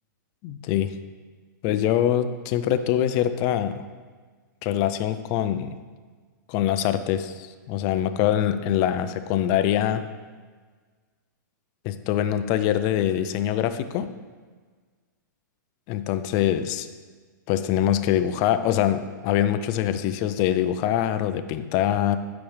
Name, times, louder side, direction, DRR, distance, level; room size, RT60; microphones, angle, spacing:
voice 1, 0.4-0.9 1.6-3.8 4.6-5.7 6.5-10.0 11.8-14.1 15.9-16.9 17.5-22.2, left 11 dB, 35° left, 10 dB, 0.5 m, -24 dB
8.5 x 5.9 x 3.3 m, 1.5 s
hypercardioid pair, 135°, 11 cm